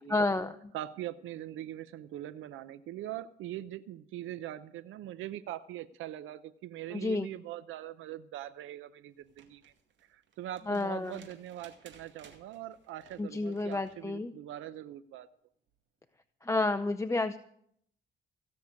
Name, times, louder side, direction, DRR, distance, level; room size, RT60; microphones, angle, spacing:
voice 1, 0.1-0.7 6.9-7.3 10.7-11.1 13.2-14.3 16.4-17.4, left 2 dB, 15° left, 8 dB, 0.6 m, -30 dB
voice 2, 0.7-9.7 10.1-15.3, right 13 dB, 85° right, 14 dB, 0.6 m, -42 dB
sound 1, 9.2-14.0 15.7-15.8, right 7 dB, 70° right, 2.2 m, -59 dB
16.0 x 6.7 x 9.4 m, 0.67 s
cardioid pair, 90°, 20 cm